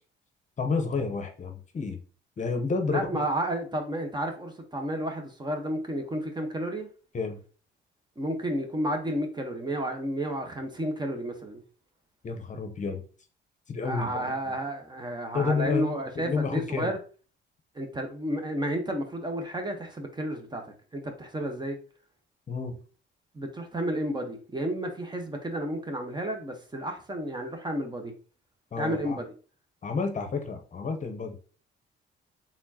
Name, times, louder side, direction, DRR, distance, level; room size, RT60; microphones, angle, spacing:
voice 1, 0.6-2.0 2.4-3.1 7.1-7.4 12.2-13.0 13.7-14.3 15.3-16.9 22.5-22.8 28.7-29.2 29.8-31.4, left 4 dB, 40° left, 6 dB, 0.8 m, -30 dB
voice 2, 2.9-6.9 8.2-11.6 13.8-17.0 17.7-20.6 20.9-21.8 23.3-28.1 28.8-29.2, right 1 dB, 20° right, 4 dB, 1.1 m, -31 dB
4.3 x 3.7 x 2.8 m, 0.38 s
cardioid pair, 90°, 20 cm